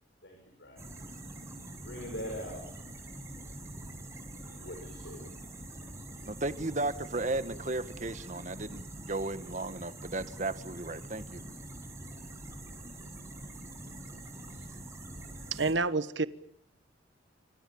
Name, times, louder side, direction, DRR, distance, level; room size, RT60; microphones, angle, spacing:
voice 1, 0.2-1.1 1.8-2.7 4.4-5.4, equal, 75° left, 3 dB, 6.7 m, -43 dB
sound 1, 0.8-15.7, right 1 dB, 15° right, 6.3 m, -45 dB
voice 2, 6.3-11.4, right 2 dB, 45° right, 12 dB, 1.6 m, -35 dB
voice 3, 15.5-16.3, right 3 dB, 90° right, 14 dB, 1.3 m, -28 dB
27.0 x 26.0 x 7.2 m, 0.67 s
head